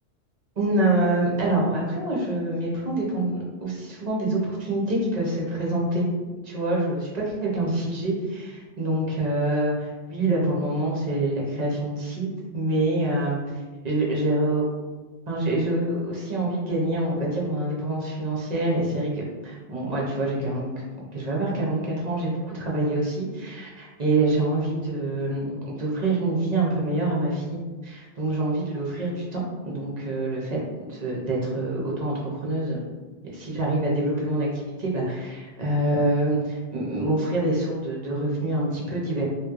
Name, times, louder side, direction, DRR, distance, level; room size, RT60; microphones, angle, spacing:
voice 1, 0.6-6.1 6.4-13.4 13.8-14.7 15.3-20.7 21.1-30.6 30.9-32.8 33.3-39.2, right 2 dB, 40° right, -4 dB, 0.7 m, -26 dB
3.0 x 2.9 x 2.4 m, 1.3 s
omnidirectional pair, 1.2 m